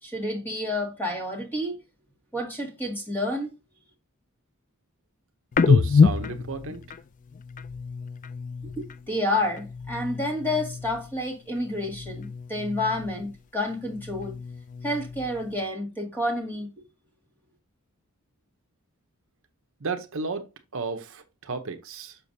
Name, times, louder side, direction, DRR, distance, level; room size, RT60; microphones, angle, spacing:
voice 1, 0.0-1.8 2.3-3.5 8.8-14.4 14.8-16.7, left 1 dB, 10° left, 2.0 m, -29 dB
sound 1, 5.5-9.1 9.4-11.2 11.5-13.4 13.7-15.6, left 5 dB, 35° left, 0.3 m, -27 dB
voice 2, 5.6-6.8 19.8-20.5 20.7-22.2, right 4 dB, 65° right, 0.8 m, -32 dB
6.9 x 5.8 x 2.7 m
head